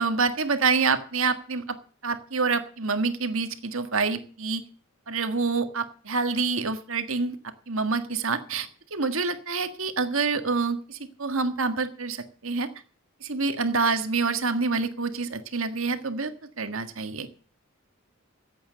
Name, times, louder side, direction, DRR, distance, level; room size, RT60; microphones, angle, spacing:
voice 1, 0.0-1.8 2.0-4.6 5.1-7.4 7.7-12.7 13.2-16.3 16.6-17.3, right 4 dB, 70° right, 8 dB, 1.7 m, -27 dB
14.5 x 8.6 x 6.9 m, 0.42 s
head